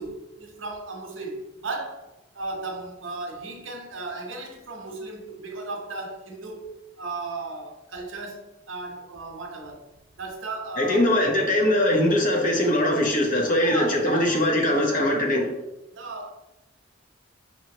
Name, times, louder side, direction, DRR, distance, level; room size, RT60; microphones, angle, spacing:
voice 1, 0.0-2.1 2.3-6.7 7.0-9.9 10.2-11.2 13.6-15.0 15.9-16.3, right 3 dB, 80° right, 0.9 m, -35 dB
voice 2, 10.8-15.5, left 1 dB, 45° left, 0.9 m, -21 dB
5.6 x 3.0 x 2.9 m
head